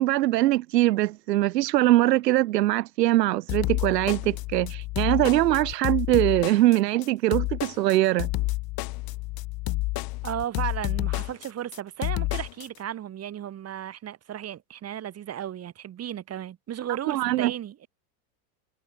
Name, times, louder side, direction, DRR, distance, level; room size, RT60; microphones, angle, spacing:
voice 1, 0.0-8.3 17.1-17.5, right 16 dB, 85° right, 2.0 m, -22 dB
sound 1, 3.5-12.7, left 21 dB, 45° left, 5.7 m, -29 dB
voice 2, 10.2-17.9, right 11 dB, 30° right, 7.8 m, -35 dB
supercardioid pair, 135°, 48 cm